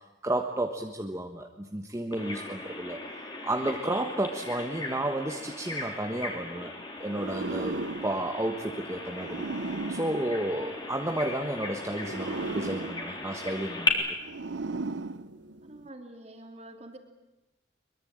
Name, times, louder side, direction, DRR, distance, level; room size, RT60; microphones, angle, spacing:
voice 1, 0.2-3.0 3.4-6.7 7.0-9.5 9.9-14.0, right 1 dB, 15° right, 3 dB, 1.3 m, -32 dB
Bird vocalization bird call bird song, 2.1-13.9, left 3 dB, 25° left, 3.6 m, -37 dB
sound 1, 7.1-11.2 11.9-15.9, right 3 dB, 90° right, 0.9 m, -37 dB
voice 2, 15.6-17.0, right 1 dB, 35° right, 5 dB, 3.0 m, -46 dB
23.0 x 22.5 x 8.9 m, 1.0 s
head